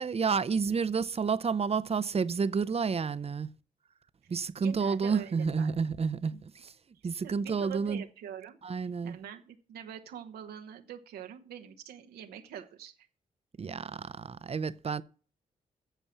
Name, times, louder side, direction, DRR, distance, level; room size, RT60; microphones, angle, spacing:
voice 1, 0.0-3.5 4.3-6.7 7.0-8.0 8.6-9.2 13.6-15.0, right 5 dB, 40° right, 0.7 m, -30 dB
voice 2, 4.6-5.7 6.3-6.4 7.2-8.6 9.0-13.0, right 9 dB, 85° right, 1.1 m, -44 dB
9.0 x 7.3 x 8.4 m
supercardioid pair, 45°, 16 cm